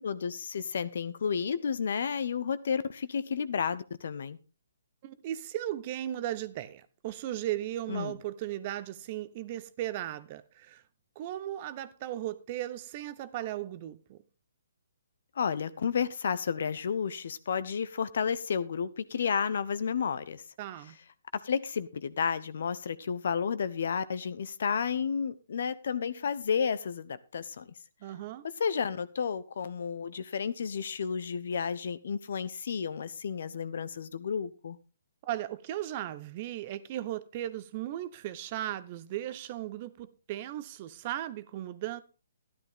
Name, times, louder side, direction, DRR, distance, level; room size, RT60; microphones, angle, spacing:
voice 1, 0.0-4.4 7.9-8.1 15.4-20.4 21.4-27.7 28.6-34.8, left 6 dB, 60° left, 0.9 m, -32 dB
voice 2, 5.0-10.8 11.2-14.2 20.6-21.0 28.0-28.5 35.3-42.0, right 13 dB, 35° right, 0.8 m, -36 dB
13.0 x 11.5 x 3.6 m
figure-of-eight pair, 135°, 0 cm